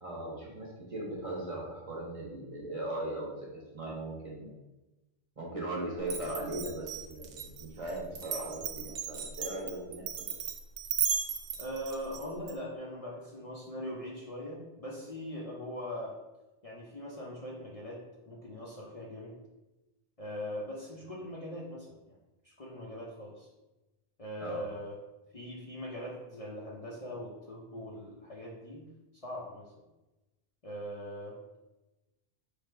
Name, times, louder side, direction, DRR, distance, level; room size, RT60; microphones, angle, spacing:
voice 1, 0.0-4.5 5.4-10.3 24.4-24.7, right 1 dB, 35° right, -4 dB, 0.9 m, -38 dB
Glass, 6.0-12.5, right 7 dB, 65° right, 0.8 m, -35 dB
voice 2, 11.6-16.2 16.6-18.0 18.3-19.4 20.2-22.0 22.4-23.5 24.2-24.9 25.3-28.8 29.2-29.7 30.6-31.6, equal, 40° left, -4 dB, 0.6 m, -41 dB
3.3 x 2.8 x 4.5 m, 1.0 s
omnidirectional pair, 1.1 m